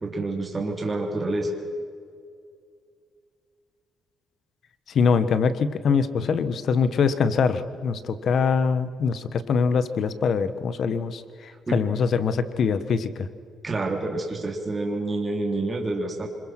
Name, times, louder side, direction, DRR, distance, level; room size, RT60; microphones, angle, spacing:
voice 1, 0.0-1.5 11.7-11.8 13.6-16.3, right 2 dB, 25° right, 1 dB, 3.1 m, -28 dB
voice 2, 4.9-11.2 11.7-13.1, left 5 dB, 60° left, 13 dB, 1.4 m, -23 dB
25.5 x 23.0 x 6.2 m, 2.2 s
cardioid pair, 90°, 0 cm